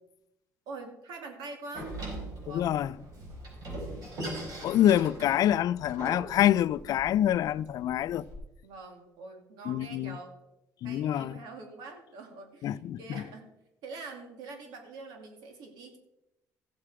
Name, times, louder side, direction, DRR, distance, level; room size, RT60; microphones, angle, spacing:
voice 1, 0.7-1.9 2.4-2.8 8.6-10.4 10.8-13.4 13.8-16.0, right 3 dB, 85° right, 2.5 m, -44 dB
Door, 1.7-8.4, right 1 dB, 60° right, 4.9 m, -41 dB
voice 2, 2.5-2.9 4.6-8.2 9.7-10.2 10.8-11.4 12.6-13.0, left 11 dB, 65° left, 0.4 m, -26 dB
15.0 x 7.7 x 4.9 m
cardioid pair, 115°, 7 cm